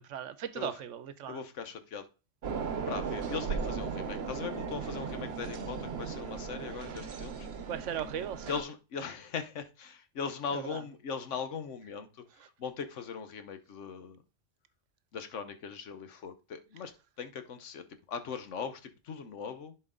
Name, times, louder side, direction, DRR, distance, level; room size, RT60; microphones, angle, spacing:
voice 1, 0.0-1.4 7.7-8.5 10.5-10.8, right 9 dB, 80° right, 13 dB, 1.0 m, -37 dB
voice 2, 1.3-2.0 2.9-7.5 8.5-12.1 12.6-14.2 15.1-16.9 17.2-19.7, left 6 dB, 75° left, 9 dB, 1.3 m, -39 dB
sound 1, 2.4-8.6, right 5 dB, 60° right, 1.1 m, -37 dB
11.0 x 4.5 x 3.8 m, 0.32 s
omnidirectional pair, 1.3 m